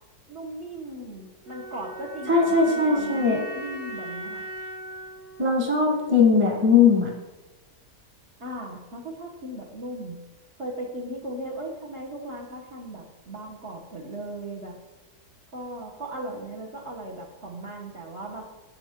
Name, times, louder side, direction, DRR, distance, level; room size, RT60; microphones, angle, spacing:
voice 1, 0.3-4.5 8.4-10.2 10.6-14.7 15.5-18.4, right 1 dB, 45° right, -2 dB, 1.3 m, -37 dB
sound 1, 1.4-6.5, right 1 dB, 65° right, 3.8 m, -39 dB
voice 2, 2.3-3.4 5.4-7.1, left 5 dB, 10° right, 0 dB, 1.1 m, -19 dB
9.0 x 7.9 x 3.7 m, 1.1 s
omnidirectional pair, 1.9 m